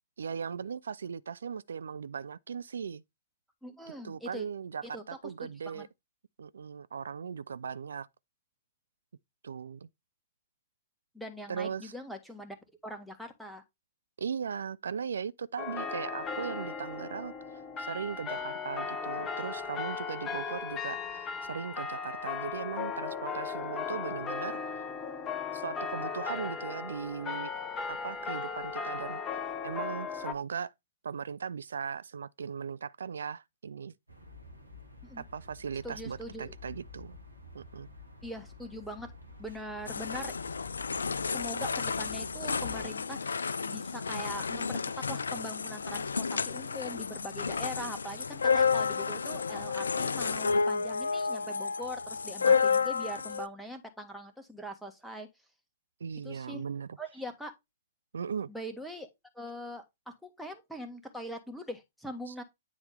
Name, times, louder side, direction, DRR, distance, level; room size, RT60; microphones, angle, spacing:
voice 1, 0.2-3.0 4.0-5.9 6.4-8.1 9.4-9.9 11.5-11.9 14.2-24.9 25.5-27.5 27.9-29.2 29.6-30.7 31.0-33.9 35.2-37.2 37.5-37.9 56.0-57.0 58.1-58.5 62.3-62.4, right 6 dB, 65° right, 0.4 m, -38 dB
voice 2, 3.6-4.5 4.9-5.0 5.4-5.8 11.1-12.6 12.8-13.6 35.0-35.2 35.8-36.5 38.2-39.1 39.4-40.4 41.3-55.3 56.2-56.6 57.0-57.5 58.5-59.1 59.3-62.4, equal, ahead, 1.5 m, -42 dB
sound 1, 15.6-30.3, left 5 dB, 20° left, 0.8 m, -37 dB
sound 2, 34.1-42.8, left 3 dB, 90° right, 2.0 m, -50 dB
sound 3, 39.9-53.5, left 5 dB, 75° left, 0.3 m, -31 dB
9.6 x 4.2 x 3.4 m
figure-of-eight pair, 110°, 0 cm